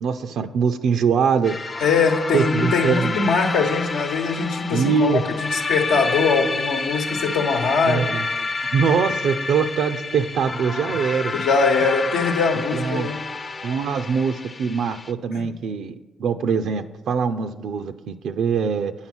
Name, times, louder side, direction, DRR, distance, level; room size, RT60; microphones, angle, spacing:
voice 1, 0.0-1.5 2.3-3.2 4.7-5.2 7.9-11.3 11.8-11.9 12.7-13.1 13.6-18.9, right 6 dB, 70° right, 9 dB, 0.5 m, -23 dB
sound 1, 1.4-15.1, left 3 dB, 30° left, 0.5 m, -29 dB
voice 2, 1.8-8.0 11.3-13.2 15.3-15.4, left 4 dB, 90° left, 2 dB, 1.0 m, -22 dB
8.7 x 5.7 x 6.1 m, 1.1 s
cardioid pair, 90°, 0 cm